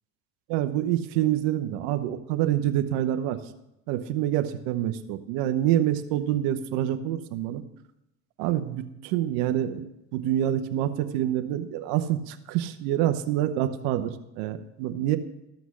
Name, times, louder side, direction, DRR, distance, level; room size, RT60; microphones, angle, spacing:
voice 1, 0.5-3.4 3.9-7.6 8.4-9.8 10.1-15.2, right 12 dB, 75° right, 8 dB, 1.0 m, -26 dB
13.0 x 6.1 x 7.3 m, 0.89 s
supercardioid pair, 90°, 37 cm